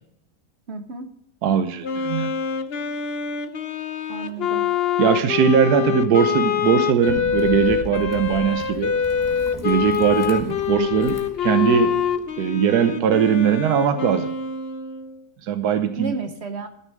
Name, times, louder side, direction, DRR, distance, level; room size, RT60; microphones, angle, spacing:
voice 1, 0.7-1.1 4.1-4.8 10.7-10.9 16.0-16.7, right 3 dB, 50° right, 8 dB, 1.0 m, -32 dB
voice 2, 1.4-2.3 5.0-8.9 9.6-11.2 11.4-12.0 12.4-14.3 15.4-16.2, right 8 dB, 85° right, 8 dB, 1.3 m, -20 dB
Wind instrument woodwind instrument, 1.8-15.2, left 8 dB, 50° left, 0.9 m, -25 dB
sound 1, 7.0-12.3, left 1 dB, 15° left, 1.5 m, -39 dB
13.0 x 6.6 x 6.4 m, 0.78 s
omnidirectional pair, 1.6 m